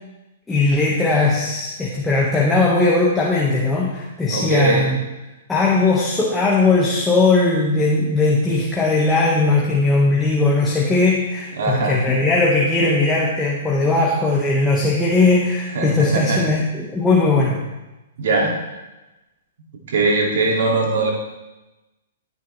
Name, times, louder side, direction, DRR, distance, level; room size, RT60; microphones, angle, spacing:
voice 1, 0.5-5.0 5.5-17.6, left 3 dB, 10° left, -5 dB, 1.7 m, -18 dB
voice 2, 4.3-4.9 11.6-11.9 15.7-16.4 18.2-18.8 19.9-21.1, right 3 dB, 65° right, -1 dB, 2.6 m, -20 dB
15.0 x 9.6 x 3.4 m, 1.0 s
hypercardioid pair, 130°, 0 cm